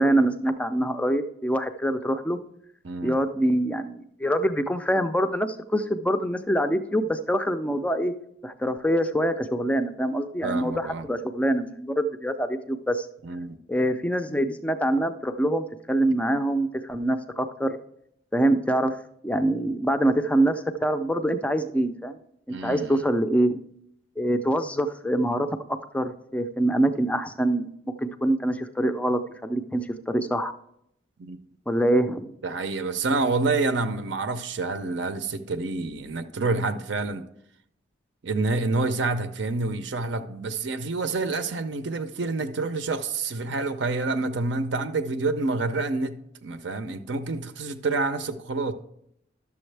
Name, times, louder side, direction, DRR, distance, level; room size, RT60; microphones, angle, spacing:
voice 1, 0.0-2.4 3.0-8.1 8.4-13.1 13.7-17.8 18.3-19.0 19.2-22.2 22.6-23.6 24.2-25.5 25.9-27.7 28.0-30.5 31.7-32.3, right 1 dB, 5° left, 9 dB, 0.4 m, -25 dB
voice 2, 2.8-3.2 10.4-11.1 13.2-13.6 22.5-23.0 31.2-31.4 32.4-37.2 38.2-48.7, right 3 dB, 65° right, 8 dB, 0.6 m, -28 dB
11.5 x 7.0 x 3.3 m, 0.75 s
head